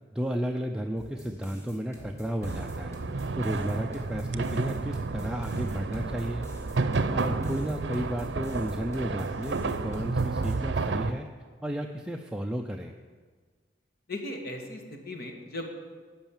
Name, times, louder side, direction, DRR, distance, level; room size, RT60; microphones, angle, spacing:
voice 1, 0.1-3.0 3.4-6.5 7.1-11.3 11.6-12.9, equal, 5° right, 2 dB, 0.5 m, -33 dB
sound 1, 1.0-10.6, equal, 15° left, 2.4 m, -47 dB
sound 2, 2.4-11.1, right 3 dB, 80° right, 0.6 m, -31 dB
voice 2, 14.1-15.7, left 1 dB, 60° left, 3 dB, 1.8 m, -37 dB
12.5 x 5.6 x 9.1 m, 1.5 s
head